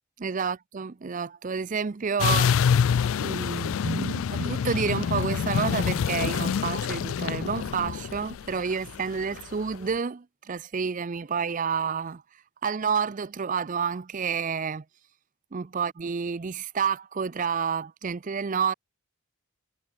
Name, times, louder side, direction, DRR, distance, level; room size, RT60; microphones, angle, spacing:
voice 1, 0.2-2.6 3.2-12.2 12.6-14.8 15.5-18.7, right 6 dB, 35° right, 0.4 m, -29 dB
sound 1, 2.2-9.5, left 7 dB, 70° left, 0.4 m, -26 dB
head